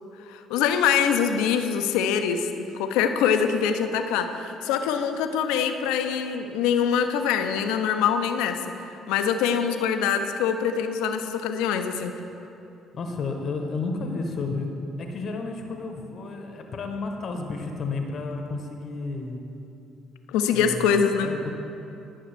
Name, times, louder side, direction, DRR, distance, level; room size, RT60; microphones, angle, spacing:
voice 1, 0.3-8.6 9.1-12.1 20.3-21.3, left 7 dB, 75° left, 7 dB, 0.4 m, -24 dB
voice 2, 12.9-19.4 20.5-21.5, left 3 dB, 55° left, 4 dB, 0.8 m, -32 dB
11.0 x 5.7 x 3.2 m, 2.8 s
hypercardioid pair, 55°, 0 cm